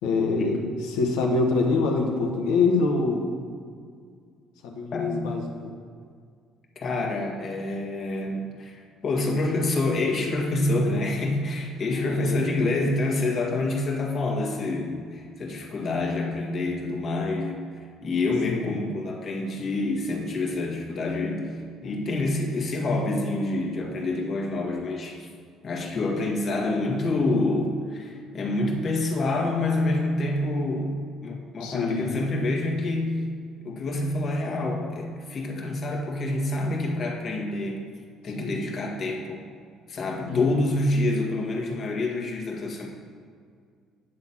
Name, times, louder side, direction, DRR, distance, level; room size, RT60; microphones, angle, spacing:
voice 1, 0.0-3.3 4.6-5.7 11.9-12.5 18.5-18.9 31.6-32.2 38.4-38.6 40.2-40.6, left 3 dB, 80° left, 1 dB, 1.4 m, -25 dB
voice 2, 4.9-5.3 6.8-25.3 25.6-31.0 31.2-33.3 33.6-37.8 38.2-39.4 39.9-42.9, left 2 dB, 50° left, 0 dB, 1.9 m, -27 dB
9.5 x 4.0 x 7.3 m, 2.1 s
supercardioid pair, 70°, 0 cm